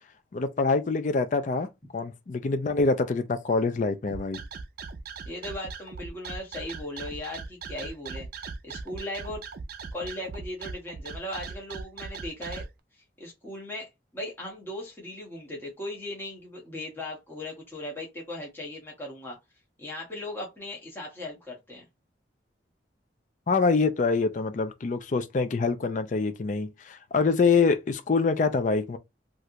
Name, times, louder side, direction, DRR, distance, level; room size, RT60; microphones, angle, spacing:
voice 1, 0.3-1.7 1.9-4.4 23.5-29.0, left 4 dB, 40° left, 0.4 m, -25 dB
sound 1, 4.1-12.7, right 4 dB, 50° right, 0.4 m, -39 dB
voice 2, 5.3-9.4 9.9-12.6 13.2-19.4 19.8-21.8, left 1 dB, 10° left, 0.9 m, -38 dB
3.1 x 2.5 x 2.7 m
head